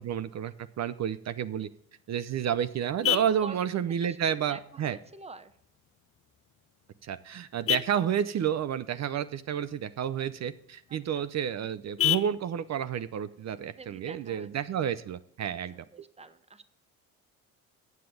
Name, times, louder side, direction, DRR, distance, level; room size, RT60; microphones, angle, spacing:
voice 1, 0.0-1.7 2.1-5.0 7.0-15.8, right 9 dB, 40° right, 14 dB, 0.6 m, -30 dB
Vehicle horn car horn honking, 1.8-14.8, left 13 dB, 30° left, 0.6 m, -37 dB
voice 2, 4.0-5.6 10.9-11.2 13.7-14.8 15.4-15.5 15.9-16.6, right 4 dB, 15° right, 13 dB, 0.8 m, -47 dB
7.6 x 7.5 x 6.7 m, 0.71 s
hypercardioid pair, 60°, 43 cm